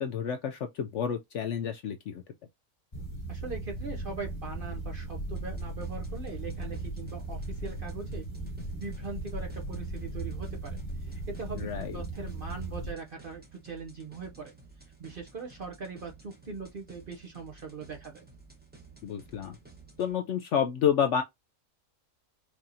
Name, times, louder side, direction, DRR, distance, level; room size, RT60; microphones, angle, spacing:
voice 1, 0.0-2.2 11.6-11.9 19.0-19.5 20.0-21.2, left 8 dB, 65° left, 0.7 m, -29 dB
sound 1, 2.9-12.9, right 2 dB, 20° left, 1.0 m, -37 dB
voice 2, 3.3-8.3 8.7-14.5 14.8-18.2, right 4 dB, 50° right, 0.6 m, -41 dB
sound 2, 5.3-20.1, right 4 dB, 10° right, 0.8 m, -54 dB
4.7 x 2.8 x 2.7 m
omnidirectional pair, 1.6 m